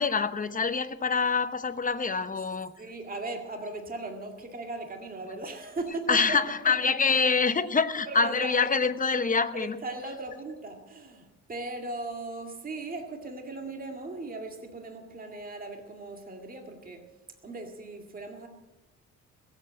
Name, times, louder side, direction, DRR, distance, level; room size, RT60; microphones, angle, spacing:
voice 1, 0.0-2.7 6.1-9.8, left 5 dB, 25° left, 1.0 m, -25 dB
voice 2, 2.8-6.4 6.7-7.2 8.1-8.6 9.5-17.0 17.4-18.5, right 2 dB, 30° right, 2.1 m, -38 dB
21.5 x 8.1 x 7.6 m
cardioid pair, 90°, 30 cm